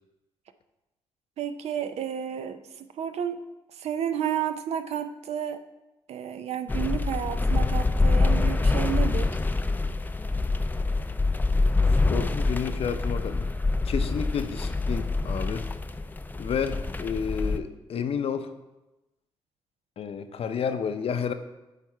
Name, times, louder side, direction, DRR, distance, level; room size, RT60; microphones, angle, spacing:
voice 1, 1.4-3.4 3.8-5.6 6.1-9.4, right 9 dB, 65° right, 10 dB, 0.5 m, -31 dB
sound 1, 6.7-17.6, left 3 dB, 15° left, 0.4 m, -25 dB
voice 2, 11.9-13.5 13.8-15.6 16.4-18.5 20.0-21.3, left 7 dB, 60° left, 9 dB, 0.6 m, -31 dB
8.9 x 3.6 x 4.5 m, 1.0 s
supercardioid pair, 50°, 11 cm